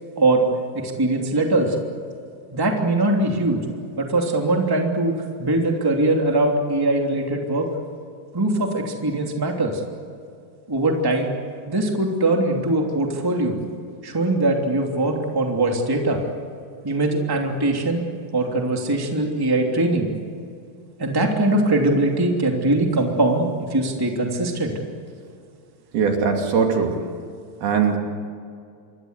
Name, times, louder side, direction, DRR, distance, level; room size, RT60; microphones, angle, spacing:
voice 1, 0.7-1.8 2.5-3.6 4.0-5.1 5.4-7.7 8.3-9.8 10.7-11.3 11.7-13.6 14.0-16.2 16.8-18.0 18.3-20.1 21.0-24.7, right 2 dB, 5° right, 1 dB, 2.3 m, -21 dB
voice 2, 25.9-27.0 27.6-28.0, right 6 dB, 75° right, 2 dB, 4.6 m, -20 dB
27.5 x 22.5 x 8.2 m, 2.3 s
omnidirectional pair, 4.5 m